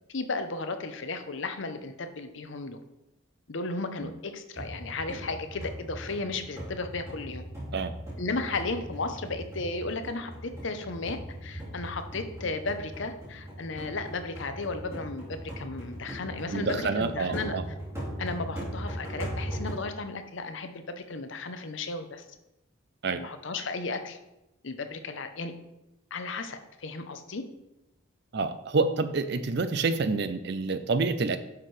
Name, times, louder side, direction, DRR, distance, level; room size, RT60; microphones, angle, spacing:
voice 1, 0.1-2.8 3.5-7.4 8.2-17.6 18.2-22.2 23.0-24.2 24.6-25.5 26.1-27.4, left 3 dB, 65° left, 8 dB, 0.7 m, -34 dB
sound 1, 4.5-19.7, equal, 15° right, 2.4 m, -39 dB
voice 2, 16.5-17.6 23.0-23.2 28.3-31.4, right 4 dB, 55° right, 11 dB, 0.5 m, -28 dB
9.8 x 6.0 x 3.3 m, 0.92 s
head